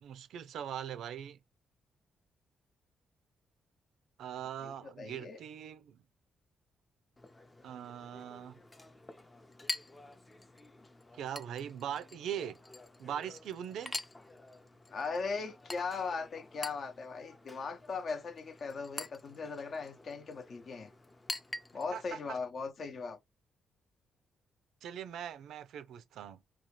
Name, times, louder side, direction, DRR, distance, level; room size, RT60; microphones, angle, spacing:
voice 1, 0.0-1.4 4.2-6.0 7.6-8.6 11.1-12.6 13.0-14.0 21.9-22.4 24.8-26.4, right 9 dB, 80° right, 0.4 m, -41 dB
voice 2, 4.6-5.4 14.9-20.9 21.7-23.2, left 4 dB, 55° left, 0.7 m, -39 dB
Chink clink, 7.2-22.1, left 2 dB, 20° left, 0.5 m, -47 dB
2.8 x 2.3 x 3.0 m
cardioid pair, 80°, 0 cm